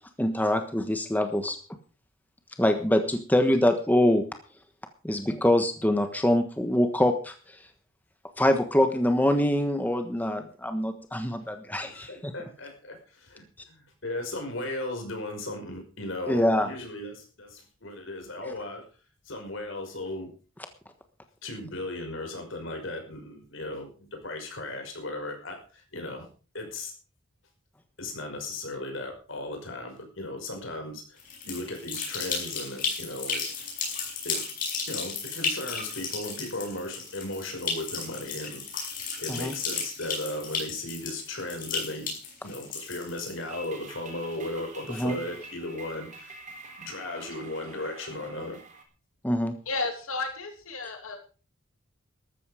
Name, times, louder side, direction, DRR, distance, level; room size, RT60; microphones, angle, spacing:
voice 1, 0.2-1.6 2.6-4.2 5.0-7.3 8.4-12.3 16.3-16.7 18.4-18.5 39.3-39.5 45.0-45.2 49.2-49.5, left 1 dB, 10° left, 7 dB, 1.3 m, -24 dB
voice 2, 11.8-18.9 19.3-20.3 21.4-26.3 26.5-26.9 28.0-33.7 34.2-34.4 34.8-42.1 42.4-46.4 46.8-48.6, left 2 dB, 65° left, 4 dB, 5.6 m, -36 dB
sound 1, 31.2-43.7, left 5 dB, 40° left, 6.3 m, -34 dB
sound 2, 43.5-48.8, right 3 dB, 35° right, 3.6 m, -46 dB
voice 3, 49.7-51.2, left 3 dB, 80° left, 4 dB, 2.7 m, -33 dB
13.5 x 13.5 x 5.0 m, 0.39 s
head